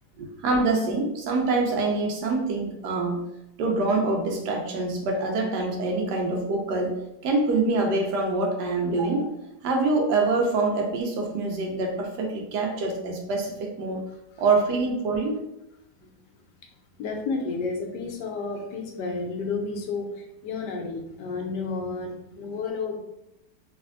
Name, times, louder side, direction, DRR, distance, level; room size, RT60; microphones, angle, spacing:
voice 1, 0.2-3.2 3.6-7.0 7.2-9.3 9.6-14.0 14.4-15.4, right 3 dB, 85° right, 1 dB, 1.2 m, -25 dB
voice 2, 17.0-23.0, left 4 dB, 85° left, 2 dB, 1.2 m, -31 dB
3.3 x 2.6 x 2.4 m, 0.87 s
omnidirectional pair, 1.8 m